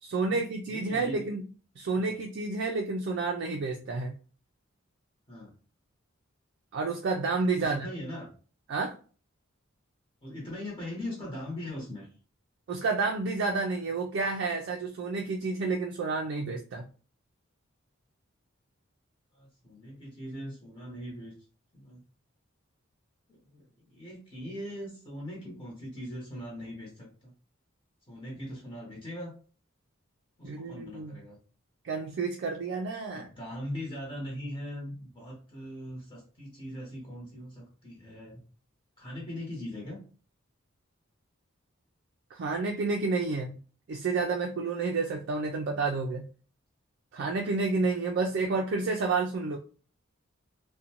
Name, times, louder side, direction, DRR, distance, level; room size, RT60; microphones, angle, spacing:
voice 1, 0.0-1.4 1.8-4.1 6.7-7.9 8.7-8.9 12.7-16.8 30.4-31.2 31.8-33.3 42.3-43.6 43.9-46.3 47.1-49.6, right 3 dB, 55° right, 1 dB, 0.3 m, -30 dB
voice 2, 0.7-1.2 1.9-2.1 5.3-5.5 7.5-8.3 10.2-12.1 19.3-21.3 21.7-22.0 23.3-27.3 28.1-29.3 30.4-31.4 33.1-38.4 39.0-40.0, left 1 dB, 25° left, -2 dB, 0.9 m, -40 dB
2.5 x 2.1 x 2.8 m, 0.38 s
head